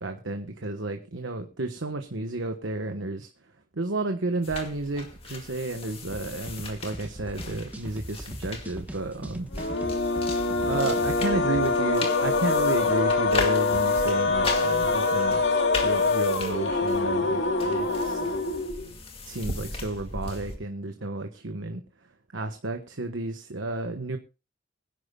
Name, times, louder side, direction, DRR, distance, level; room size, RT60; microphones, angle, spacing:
voice 1, 0.0-9.5 10.7-18.3 19.2-24.2, right 2 dB, 85° right, 5 dB, 1.2 m, -32 dB
sound 1, 4.4-20.6, left 3 dB, 30° left, 2.1 m, -38 dB
sound 2, 6.1-11.7, equal, 10° right, 1.1 m, -40 dB
sound 3, 9.5-18.9, left 3 dB, 65° left, 2.0 m, -25 dB
23.0 x 10.5 x 2.3 m, 0.29 s
head